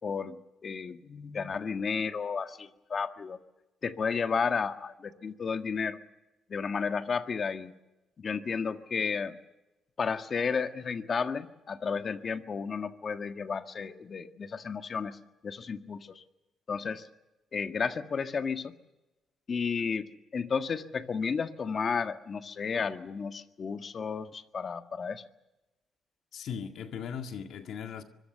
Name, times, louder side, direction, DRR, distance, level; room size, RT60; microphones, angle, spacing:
voice 1, 0.0-3.4 3.8-6.0 6.5-7.7 8.2-9.4 10.0-15.2 15.4-16.2 16.7-17.1 17.5-18.7 19.5-20.1 20.3-25.2, left 5 dB, 45° left, 1.6 m, -32 dB
voice 2, 26.3-28.0, left 7 dB, 70° left, 1.9 m, -38 dB
25.0 x 22.5 x 6.9 m
cardioid pair, 90°, 0 cm